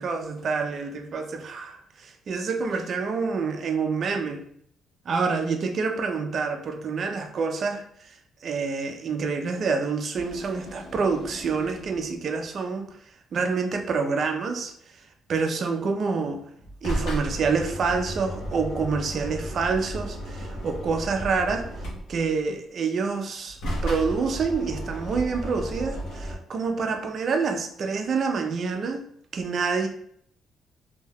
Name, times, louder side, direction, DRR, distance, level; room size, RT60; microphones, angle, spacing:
voice 1, 0.0-4.4 5.1-7.8 8.4-12.9 13.3-14.7 15.3-16.4 16.8-21.7 22.1-29.0 29.3-29.9, right 4 dB, 40° right, 4 dB, 0.4 m, -27 dB
sound 1, 10.1-12.1 16.6-22.4 23.5-26.3, equal, 90° left, 1.0 m, -34 dB
2.6 x 2.1 x 3.4 m, 0.66 s
cardioid pair, 165°, 0 cm